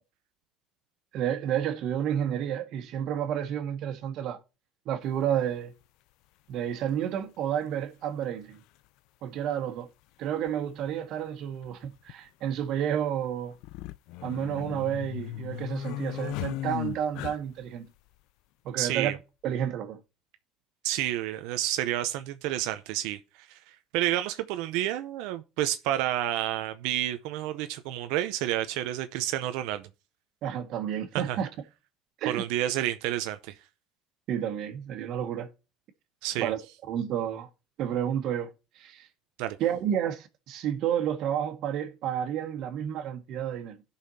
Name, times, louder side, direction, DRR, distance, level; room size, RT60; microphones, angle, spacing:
voice 1, 1.1-4.4 4.8-5.7 6.5-8.6 9.2-9.9 10.2-13.6 14.2-17.9 18.6-19.2 19.4-20.0 30.4-31.5 32.2-32.4 34.3-35.5 36.4-36.6 36.9-37.5 37.8-38.5 38.7-39.1 39.6-43.8, right 9 dB, 65° right, 1.6 m, -30 dB
sound 1, 5.1-5.3 6.7-6.8 8.2-8.3 8.5-8.6 10.5-10.6 10.9-11.0 11.6-12.1 13.5-17.7, left 15 dB, 75° left, 0.4 m, -36 dB
voice 2, 18.8-19.2 20.8-29.9 31.1-31.4 32.3-33.5 36.2-36.5 39.4-39.6, right 13 dB, 80° right, 0.6 m, -30 dB
16.5 x 5.7 x 2.7 m
cardioid pair, 110°, 0 cm